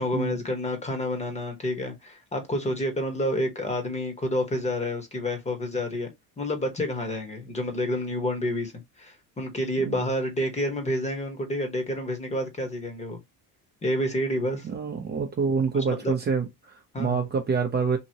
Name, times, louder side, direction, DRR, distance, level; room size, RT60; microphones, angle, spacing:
voice 1, 0.0-13.2 13.8-14.7 15.7-16.1 16.9-17.2, left 1 dB, 15° left, 1.1 m, -29 dB
voice 2, 14.6-18.0, right 5 dB, 25° right, 0.7 m, -27 dB
2.9 x 2.8 x 2.8 m
cardioid pair, 125°, 40 cm